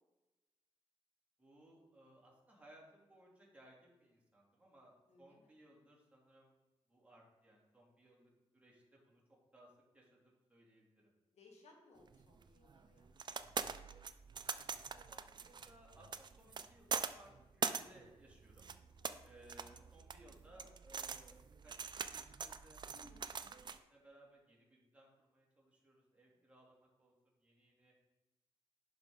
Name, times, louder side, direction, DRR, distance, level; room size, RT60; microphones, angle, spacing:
voice 1, 1.4-6.5 6.9-9.2 9.5-11.1 15.1-18.6 19.2-22.8 23.5-27.9, right 1 dB, 15° right, -4 dB, 2.7 m, -64 dB
voice 2, 5.1-5.5 11.3-13.5 19.0-19.3 22.9-23.3 26.2-26.4, left 2 dB, 80° left, 1 dB, 1.6 m, -64 dB
sound 1, 12.1-23.8, right 6 dB, 45° right, 0.5 m, -44 dB
10.5 x 5.2 x 3.8 m, 1.1 s
cardioid pair, 90°, 11 cm